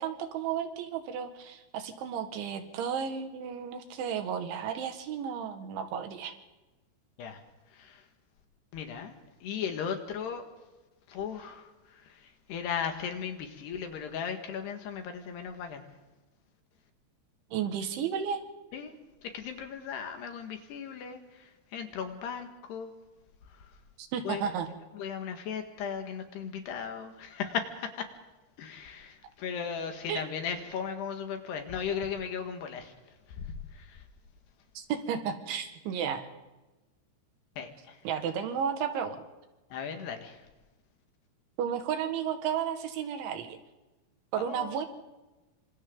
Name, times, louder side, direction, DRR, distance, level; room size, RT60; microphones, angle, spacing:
voice 1, 0.0-6.3 17.5-18.4 24.0-24.7 30.1-30.2 34.8-36.3 38.1-39.2 41.6-43.6 44.3-44.9, right 8 dB, 80° right, 7 dB, 4.1 m, -33 dB
voice 2, 8.7-9.2 9.4-10.4 11.1-15.8 18.7-19.0 19.2-22.9 24.3-24.5 25.0-28.1 28.6-32.9 33.4-34.0 37.6-38.0 39.7-40.4 44.4-44.9, left 7 dB, 65° left, 6 dB, 3.6 m, -37 dB
27.0 x 26.0 x 3.9 m, 1.1 s
omnidirectional pair, 5.4 m